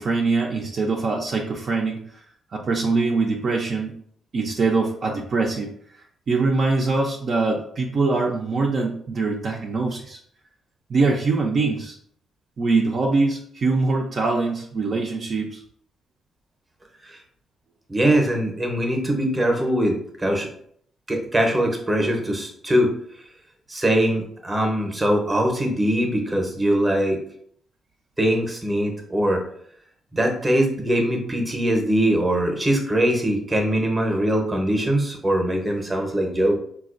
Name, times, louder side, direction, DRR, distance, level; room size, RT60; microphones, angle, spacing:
voice 1, 0.0-2.0 2.5-3.9 4.3-5.7 6.3-10.2 10.9-12.0 12.6-15.6, right 3 dB, 50° right, 0 dB, 0.5 m, -23 dB
voice 2, 17.9-20.5 21.1-22.9 23.7-27.2 28.2-29.4 30.1-36.6, right 1 dB, 20° right, 3 dB, 0.8 m, -22 dB
4.1 x 2.3 x 2.5 m, 0.63 s
cardioid pair, 90°, 0 cm